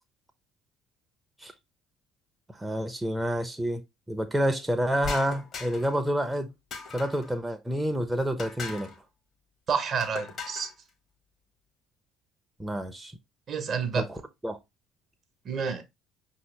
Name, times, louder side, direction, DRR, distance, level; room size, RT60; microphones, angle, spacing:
voice 1, 2.6-6.5 6.9-8.9 12.6-13.1 14.0-14.1 14.4-14.6, equal, 10° right, 0.7 m, -28 dB
sound 1, 5.0-6.0 6.7-7.3 8.4-9.0 10.0-10.7, left 5 dB, 45° left, 1.1 m, -38 dB
voice 2, 9.7-10.7 13.5-14.0 15.4-15.8, right 6 dB, 45° right, 1.0 m, -29 dB
5.6 x 2.9 x 3.2 m
figure-of-eight pair, 55°, 0 cm